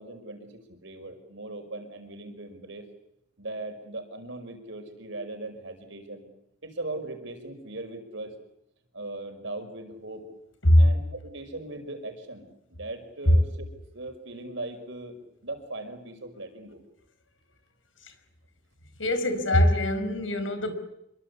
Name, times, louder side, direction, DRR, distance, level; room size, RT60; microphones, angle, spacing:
voice 1, 0.0-2.9 3.4-6.3 6.6-8.4 8.9-10.3 10.8-13.7 13.9-15.2 15.4-16.8, right 2 dB, 70° right, 6 dB, 5.6 m, -39 dB
voice 2, 19.0-20.7, left 1 dB, 90° left, 10 dB, 5.2 m, -21 dB
27.5 x 24.0 x 8.4 m, 0.79 s
head